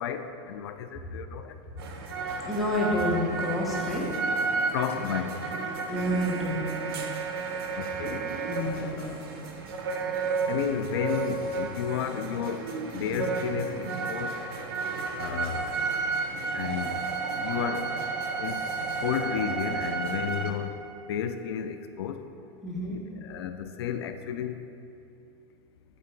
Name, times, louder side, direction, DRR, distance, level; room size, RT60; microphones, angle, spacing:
voice 1, 0.0-1.6 4.7-5.4 7.7-8.3 8.7-9.2 10.5-12.7 12.9-14.3 15.2-15.7 16.5-17.0 17.4-17.9 18.4-18.6 19.0-20.8 21.1-22.2 23.2-24.6, left 8 dB, 85° left, 9 dB, 0.4 m, -32 dB
sound 1, 1.8-20.5, right 4 dB, 75° right, 0.7 m, -32 dB
voice 2, 2.5-4.1 5.9-6.9 8.5-9.2 22.6-23.0, equal, ahead, -6 dB, 0.8 m, -29 dB
7.6 x 2.8 x 4.6 m, 2.5 s
supercardioid pair, 160°, 13 cm